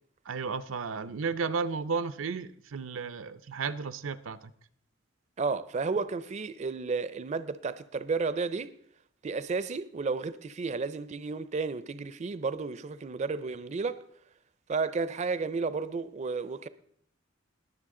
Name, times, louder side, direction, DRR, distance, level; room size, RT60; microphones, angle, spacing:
voice 1, 0.3-4.5, right 5 dB, 85° right, 0.6 m, -33 dB
voice 2, 5.4-8.7 9.2-14.0 14.7-16.7, right 4 dB, 35° right, 0.4 m, -32 dB
21.0 x 7.1 x 3.7 m
head